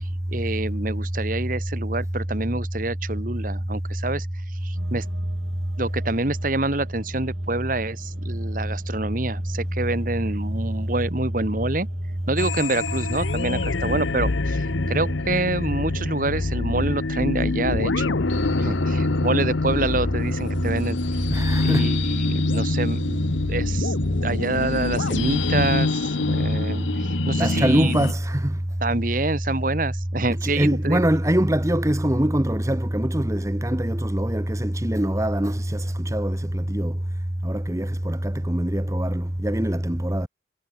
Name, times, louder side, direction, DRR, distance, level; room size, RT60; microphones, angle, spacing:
voice 1, 0.3-4.3 4.6-5.0 5.8-11.9 12.3-18.1 18.6-21.3 21.6-23.9 24.2-27.9 28.8-31.0, right 2 dB, 45° right, 1.6 m, -27 dB
sound 1, 4.7-21.2, equal, 80° right, 8.0 m, -45 dB
Mission Control, 12.4-28.1, left 3 dB, 85° left, 0.9 m, -25 dB
voice 2, 21.3-21.9 27.4-28.6 30.4-36.9 37.4-40.3, right 1 dB, 15° right, 1.1 m, -23 dB
head